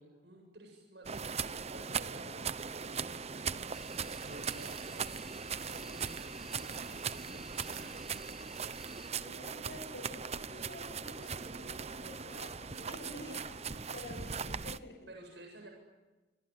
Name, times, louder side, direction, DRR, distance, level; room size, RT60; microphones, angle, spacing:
voice 1, 0.0-3.5 4.2-5.2 5.6-8.1 15.1-15.7, right 1 dB, 75° right, 2 dB, 8.0 m, -53 dB
sound 1, 1.1-14.8, right 6 dB, 40° right, 0.9 m, -39 dB
sound 2, 3.7-9.1, equal, ahead, 2.3 m, -52 dB
voice 2, 9.2-15.0, left 1 dB, 70° left, 2 dB, 7.2 m, -49 dB
27.0 x 27.0 x 7.9 m, 1.2 s
head